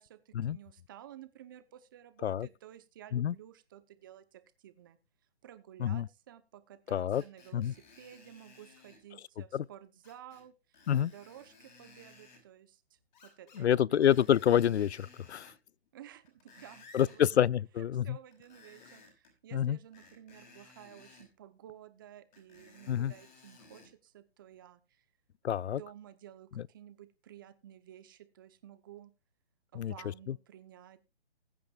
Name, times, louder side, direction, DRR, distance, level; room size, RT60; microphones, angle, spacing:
voice 1, 0.0-5.0 5.4-14.1 15.9-17.4 17.8-25.1 25.5-29.1 29.7-31.0, right 11 dB, 20° right, 0.7 m, -53 dB
voice 2, 6.9-7.2 7.5-7.7 9.5-9.6 10.9-11.1 13.6-15.5 16.9-18.2 19.5-19.8 22.9-23.1 25.4-25.8 29.8-29.9 30.3-30.4, left 10 dB, 85° left, 0.5 m, -27 dB
Screech, 7.1-9.0 10.0-10.4 10.7-12.4 13.1-13.7 13.9-15.6 16.1-17.2 18.3-19.3 19.9-21.3 22.3-23.9 24.5-24.6, left 3 dB, 45° left, 5.5 m, -58 dB
20.5 x 8.5 x 2.4 m
hypercardioid pair, 160°, 32 cm